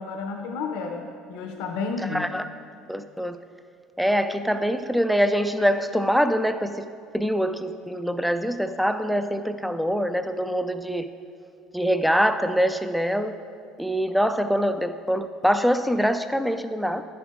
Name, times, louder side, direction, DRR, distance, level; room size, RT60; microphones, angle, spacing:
voice 1, 0.0-2.3, left 4 dB, 75° left, 3 dB, 0.9 m, -31 dB
voice 2, 2.1-2.5 2.9-3.4 4.0-6.9 7.1-11.1 11.7-13.3 13.8-17.0, equal, ahead, 10 dB, 0.4 m, -24 dB
10.0 x 7.0 x 3.7 m, 2.4 s
supercardioid pair, 110°, 0 cm